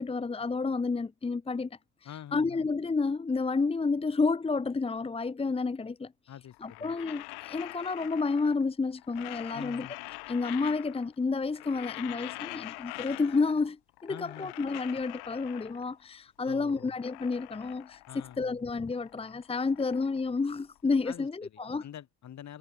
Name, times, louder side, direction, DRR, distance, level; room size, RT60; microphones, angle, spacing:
voice 1, 0.0-1.7 2.3-6.1 6.6-9.9 10.3-18.0 18.4-21.8, left 4 dB, 15° left, 1.2 m, -30 dB
voice 2, 2.0-2.7 6.3-7.0 9.5-10.0 14.1-14.5 16.4-17.0 18.1-18.6 21.0-22.6, left 10 dB, 45° left, 5.7 m, -46 dB
sound 1, 6.5-8.7 9.0-11.2 11.4-13.7 14.0-16.0 16.5-18.5 18.8-21.0, left 25 dB, 85° left, 6.8 m, -44 dB
cardioid pair, 120°, 38 cm